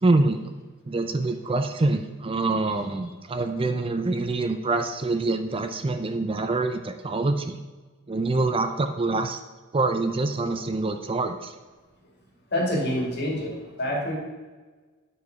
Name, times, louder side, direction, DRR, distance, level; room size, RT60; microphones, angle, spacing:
voice 1, 0.0-0.5 0.9-7.6 8.1-9.4 9.7-11.5, right 2 dB, 25° right, 7 dB, 0.5 m, -25 dB
voice 2, 12.5-14.2, equal, 55° left, -1 dB, 2.5 m, -27 dB
9.5 x 4.8 x 5.9 m, 1.3 s
head